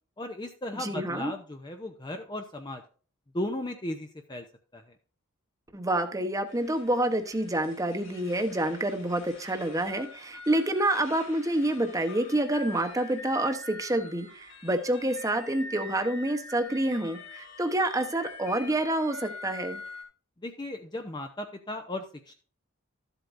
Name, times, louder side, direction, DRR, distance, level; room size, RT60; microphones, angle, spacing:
voice 1, 0.2-2.8 3.3-4.4 4.7-4.8 20.4-22.3, left 1 dB, 20° left, 5 dB, 0.7 m, -36 dB
voice 2, 0.8-1.3 5.7-19.8, right 1 dB, 15° right, 6 dB, 1.0 m, -28 dB
sound 1, 6.5-20.0, left 2 dB, 65° left, 4.0 m, -45 dB
13.5 x 8.0 x 2.6 m, 0.40 s
head